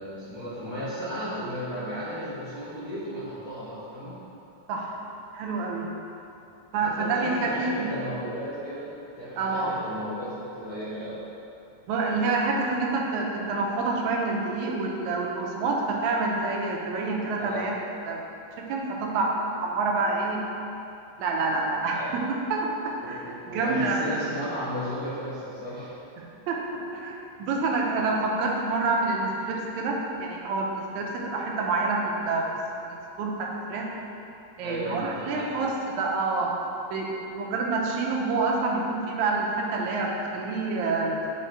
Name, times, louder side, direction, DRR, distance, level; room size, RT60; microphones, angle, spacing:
voice 1, 0.0-4.2 6.8-8.9 9.2-11.2 17.4-17.7 21.9-22.1 23.0-25.9 34.6-35.7, equal, 65° left, -12 dB, 0.9 m, -35 dB
voice 2, 5.3-5.9 6.7-7.9 9.4-9.7 11.9-17.7 18.1-18.2 18.6-19.3 19.6-20.4 21.2-24.1 26.5-32.5 32.7-33.9 34.6-36.5 36.9-41.2, right 3 dB, 85° right, -1 dB, 2.1 m, -27 dB
6.3 x 3.6 x 4.5 m, 2.8 s
omnidirectional pair, 3.3 m